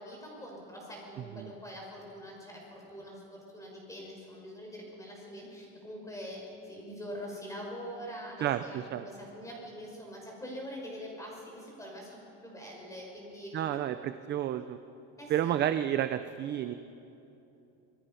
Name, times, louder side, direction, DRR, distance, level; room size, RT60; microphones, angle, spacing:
voice 1, 0.0-12.1 12.4-13.5 15.2-15.5, equal, 10° left, -2 dB, 5.7 m, -44 dB
voice 2, 8.4-9.0 13.5-14.8 15.3-16.7, right 11 dB, 30° right, 10 dB, 0.5 m, -31 dB
27.0 x 20.5 x 5.7 m, 2.9 s
cardioid pair, 160°, 38 cm